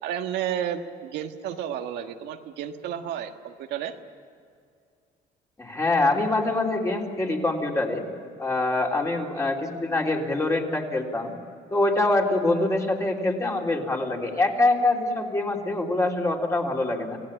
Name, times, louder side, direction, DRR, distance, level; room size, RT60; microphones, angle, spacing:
voice 1, 0.0-3.9, right 9 dB, 85° right, 5 dB, 1.5 m, -32 dB
voice 2, 5.6-8.0 8.4-11.3 11.7-17.2, left 2 dB, 15° left, 0 dB, 3.7 m, -24 dB
26.5 x 18.0 x 9.0 m, 2.3 s
cardioid pair, 110°, 17 cm